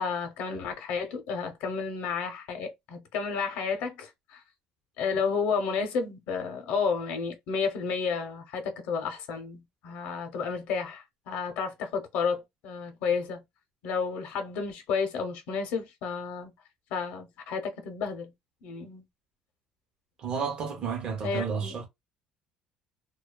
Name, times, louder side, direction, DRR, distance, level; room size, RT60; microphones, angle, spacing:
voice 1, 0.0-4.4 5.0-13.4 13.8-16.5 16.9-18.3 18.6-19.0 21.2-21.7, left 5 dB, 65° left, 0.7 m, -31 dB
voice 2, 20.2-21.9, right 6 dB, 35° right, 0.7 m, -31 dB
2.7 x 2.2 x 2.2 m
cardioid pair, 170°, 3 cm